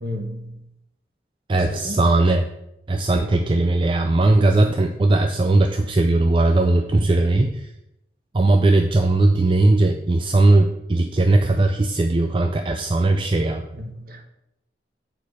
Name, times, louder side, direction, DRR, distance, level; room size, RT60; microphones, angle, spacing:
voice 1, 0.0-0.6 1.5-2.0 13.7-14.2, equal, 50° right, 4 dB, 1.1 m, -33 dB
voice 2, 1.5-2.4 2.9-7.7 8.3-13.7, right 2 dB, 30° right, 5 dB, 0.4 m, -18 dB
8.2 x 4.6 x 4.8 m, 0.82 s
head